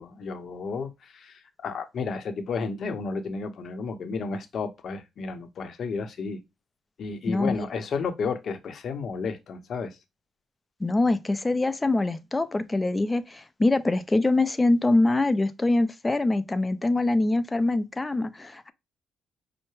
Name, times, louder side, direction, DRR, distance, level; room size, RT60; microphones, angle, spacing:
voice 1, 0.0-6.4 7.0-10.0, left 4 dB, 60° left, 0.7 m, -32 dB
voice 2, 10.8-18.7, left 2 dB, 20° left, 0.5 m, -24 dB
5.5 x 2.1 x 3.1 m
cardioid pair, 90°, 0 cm